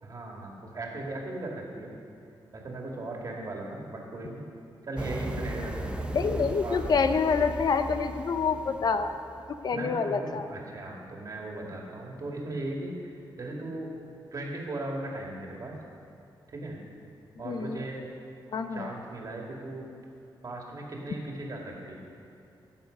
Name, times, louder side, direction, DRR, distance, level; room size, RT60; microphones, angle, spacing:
voice 1, 0.0-2.0 2.5-4.4 4.8-6.8 9.7-12.9 13.4-13.9 14.3-15.8 16.5-16.8 17.4-18.1 18.7-19.8 20.4-22.0, right 2 dB, 45° right, -1 dB, 2.2 m, -37 dB
sound 1, 5.0-9.7, right 1 dB, 10° right, 0.7 m, -37 dB
voice 2, 6.1-9.1 9.6-10.5 17.4-17.8 18.5-18.9, left 5 dB, 50° left, 9 dB, 0.5 m, -27 dB
17.0 x 7.2 x 5.3 m, 2.6 s
wide cardioid pair, 115°, 9 cm